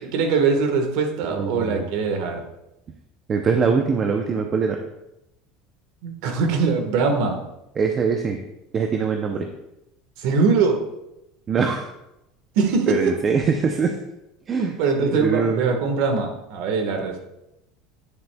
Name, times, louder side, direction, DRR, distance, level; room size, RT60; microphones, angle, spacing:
voice 1, 0.0-2.4 6.0-7.4 10.2-10.8 12.5-13.0 14.6-17.2, right 4 dB, 65° right, 5 dB, 1.3 m, -22 dB
voice 2, 1.4-1.9 3.3-4.8 7.8-8.4 8.7-9.5 11.5-11.8 12.9-14.0 14.5-14.7 15.0-15.7, right 5 dB, 25° right, 4 dB, 0.6 m, -22 dB
9.6 x 7.6 x 2.3 m, 0.89 s
supercardioid pair, 145°, 0 cm